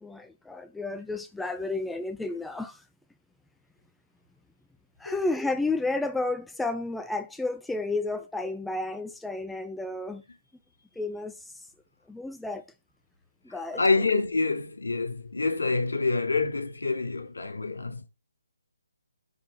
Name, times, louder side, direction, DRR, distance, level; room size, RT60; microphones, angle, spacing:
voice 1, 0.0-2.8 5.0-10.2 11.0-11.4 12.1-12.6 13.5-13.8, left 2 dB, 5° left, 0.4 m, -31 dB
voice 2, 13.5-18.0, left 3 dB, 75° left, 3.6 m, -27 dB
10.0 x 4.4 x 4.5 m
figure-of-eight pair, 150°, 0 cm